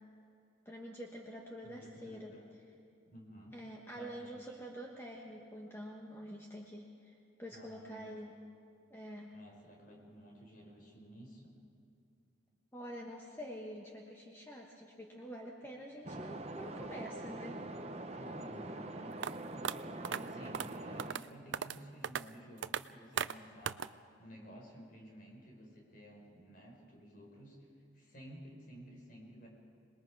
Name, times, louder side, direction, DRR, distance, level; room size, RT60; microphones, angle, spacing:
voice 1, 0.6-2.3 3.5-8.3 8.9-9.3 12.7-17.6, equal, 10° left, -2 dB, 1.4 m, -47 dB
voice 2, 1.6-2.4 3.1-3.6 3.9-4.5 7.5-8.1 9.3-11.5 18.1-27.6 27.9-29.5, equal, 45° left, -1 dB, 4.9 m, -53 dB
sound 1, 16.0-21.1, right 2 dB, 35° right, 0.9 m, -44 dB
sound 2, 19.2-19.3 19.6-19.7 20.0-20.2 20.5-20.7 21.0-21.2 21.5-21.8 22.0-22.2 22.6-22.8 23.2-23.3 23.7-23.9, right 8 dB, 70° right, 0.4 m, -36 dB
27.0 x 20.5 x 4.8 m, 2.6 s
head